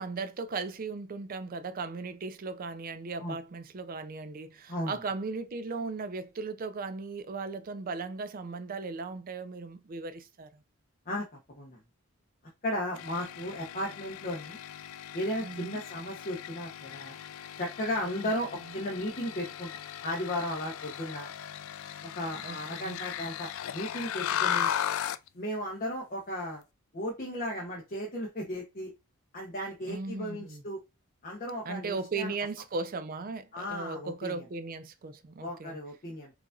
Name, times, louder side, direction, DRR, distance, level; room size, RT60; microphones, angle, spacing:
voice 1, 0.0-10.6 15.4-15.8 18.2-18.3 22.4-23.0 29.8-30.6 31.6-35.8, right 4 dB, 40° right, 0.4 m, -37 dB
voice 2, 12.6-14.6 15.1-17.2 17.6-19.7 20.0-21.3 22.1-24.7 25.3-26.6 26.9-28.9 29.3-30.8 31.2-32.3 33.5-34.4 35.4-36.3, left 1 dB, 40° left, 0.8 m, -35 dB
sound 1, 12.9-25.3, left 9 dB, 60° left, 0.3 m, -37 dB
4.6 x 2.5 x 2.4 m
head